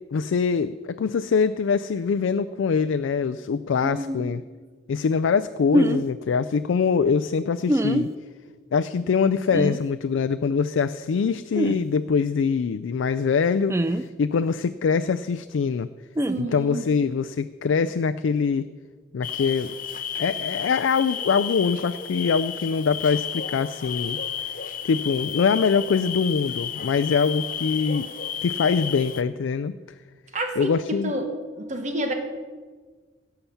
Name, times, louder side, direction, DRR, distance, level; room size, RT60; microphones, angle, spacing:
voice 1, 0.1-4.4 4.9-8.1 8.7-15.9 16.4-18.7 19.1-19.7 20.2-24.2 24.8-28.1 28.4-29.7 30.6-31.1, left 5 dB, 85° left, 12 dB, 0.4 m, -23 dB
voice 2, 3.8-4.3 16.3-16.8 30.3-31.3 31.6-32.1, right 1 dB, 40° right, 5 dB, 1.2 m, -29 dB
sound 1, 5.7-6.0 7.7-8.1 9.5-9.8 11.6-11.8 13.7-14.0 16.2-16.4, equal, 15° right, 0.4 m, -22 dB
sound 2, 19.2-29.2, left 8 dB, 45° left, 0.7 m, -32 dB
17.0 x 5.8 x 7.0 m, 1.5 s
head